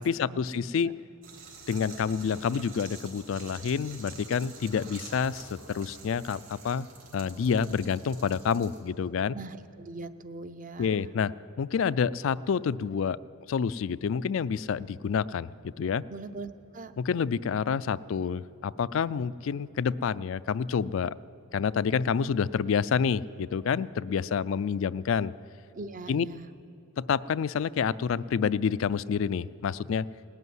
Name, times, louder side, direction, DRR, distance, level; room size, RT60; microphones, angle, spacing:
voice 1, 0.0-0.9 1.7-6.9 7.1-9.4 10.8-11.3 11.6-13.2 13.5-15.5 15.8-16.0 17.0-21.1 21.5-25.3 26.1-26.2 27.0-30.1, left 6 dB, 60° left, 17 dB, 0.3 m, -28 dB
sound 1, 1.2-8.8, right 4 dB, 70° right, 4.0 m, -47 dB
voice 2, 9.3-11.1 16.1-16.9 25.7-26.5, right 3 dB, 35° right, 11 dB, 0.6 m, -41 dB
19.0 x 8.2 x 9.4 m, 2.9 s
head